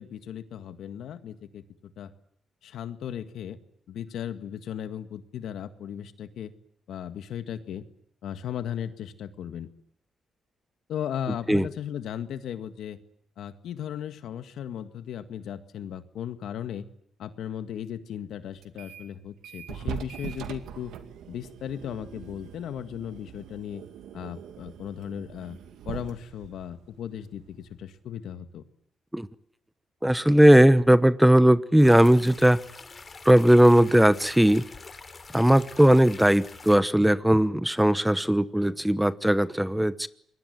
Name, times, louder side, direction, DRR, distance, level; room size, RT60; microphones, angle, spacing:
voice 1, 0.0-1.6 2.0-2.1 2.6-3.6 3.9-6.5 6.9-7.9 8.2-9.7 10.9-13.0 13.4-16.9 17.2-20.9 21.3-23.8 24.1-25.6 25.9-28.6, left 9 dB, 80° left, 10 dB, 1.9 m, -36 dB
sound 1, 18.6-19.1 19.4-27.9, right 9 dB, 90° right, 2.3 m, -42 dB
voice 2, 30.0-32.6 33.2-34.6 35.3-40.1, right 1 dB, 5° right, 15 dB, 1.1 m, -18 dB
sound 2, 31.8-36.8, left 4 dB, 35° left, 3.3 m, -45 dB
27.0 x 21.5 x 9.5 m, 0.67 s
cardioid pair, 100°, 0 cm